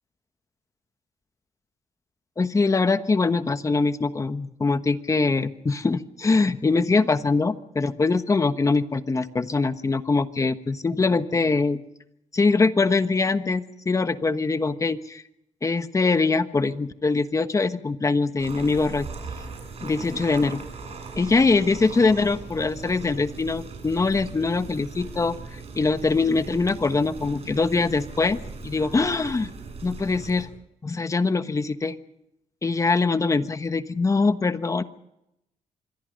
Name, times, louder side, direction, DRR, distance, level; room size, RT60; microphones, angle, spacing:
voice 1, 2.4-11.8 12.3-15.2 15.6-19.1 19.8-20.6 21.2-29.5 29.8-30.5 30.8-31.9 32.6-34.8, left 3 dB, 25° left, 11 dB, 1.3 m, -23 dB
sound 1, 18.4-30.5, right 4 dB, 55° right, 7.5 m, -39 dB
26.5 x 22.0 x 5.3 m, 0.84 s
cardioid pair, 105°, 13 cm